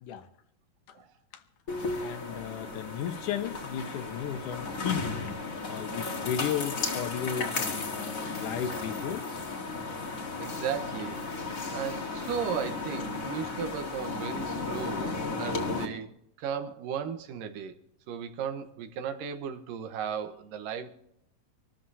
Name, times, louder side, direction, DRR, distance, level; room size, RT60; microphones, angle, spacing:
sound 1, 1.7-15.9, left 3 dB, 35° left, 1.4 m, -34 dB
voice 1, 2.0-5.2 5.7-9.4, left 9 dB, 75° left, 2.5 m, -34 dB
voice 2, 10.4-11.3 11.7-17.8 18.1-20.9, right 7 dB, 85° right, 2.8 m, -35 dB
26.0 x 13.5 x 2.8 m
omnidirectional pair, 3.8 m